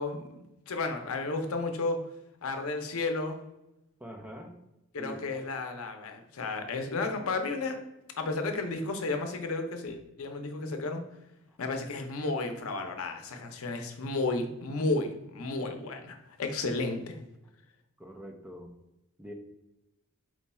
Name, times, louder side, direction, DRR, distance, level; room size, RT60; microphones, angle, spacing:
voice 1, 0.0-2.0 2.4-3.4 4.9-7.8 8.2-11.0 11.6-17.2, left 3 dB, 85° left, 5 dB, 0.6 m, -33 dB
voice 2, 4.0-4.6 5.0-5.4 11.5-11.6 18.0-18.7 19.2-19.3, equal, 5° right, 2 dB, 0.4 m, -44 dB
4.5 x 2.3 x 4.1 m, 0.91 s
head